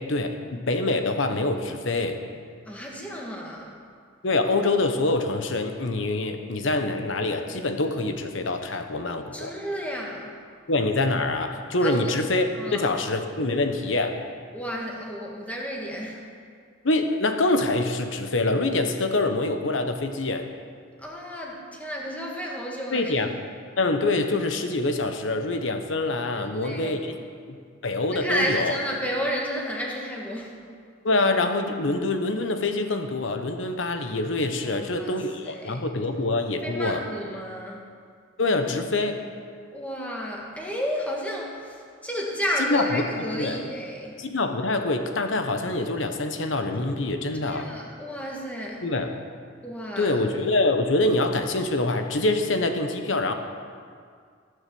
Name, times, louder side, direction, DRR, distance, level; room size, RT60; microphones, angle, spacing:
voice 1, 0.0-2.2 4.2-9.5 10.7-12.5 12.7-14.2 16.8-20.5 22.9-23.3 23.8-27.1 27.5-27.6 27.8-28.7 31.0-37.0 38.4-39.2 42.7-43.6 44.2-47.7 48.8-49.1 50.0-53.3, left 2 dB, 80° left, 6 dB, 1.1 m, -25 dB
voice 2, 2.6-3.8 9.3-10.4 11.8-12.1 12.6-12.9 14.5-16.2 21.0-23.1 26.4-27.2 28.1-30.6 34.6-35.1 35.4-35.8 36.6-37.9 39.7-44.2 47.5-48.8 49.6-50.1, equal, 10° left, -2 dB, 1.8 m, -32 dB
15.5 x 7.1 x 7.0 m, 2.1 s
head